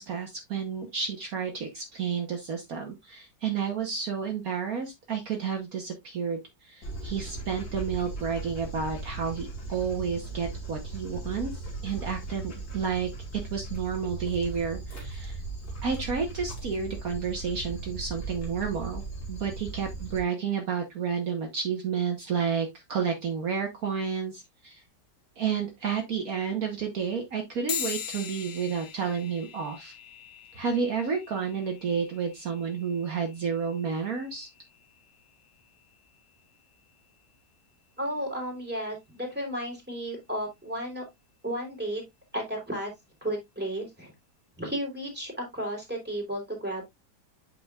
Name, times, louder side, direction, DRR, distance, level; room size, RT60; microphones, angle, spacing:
voice 1, 0.0-15.4 15.8-24.8 25.4-29.9 30.5-34.5, right 6 dB, 60° right, 3 dB, 1.5 m, -31 dB
Dog, 6.8-20.2, right 3 dB, 60° left, 2.7 m, -38 dB
sound 1, 27.7-37.5, left 9 dB, 80° left, 0.5 m, -42 dB
voice 2, 38.0-41.0 41.4-42.0 42.3-42.9 43.2-44.1 44.6-46.8, equal, 5° right, 1 dB, 3.0 m, -33 dB
8.3 x 5.9 x 2.3 m, 0.18 s
omnidirectional pair, 1.8 m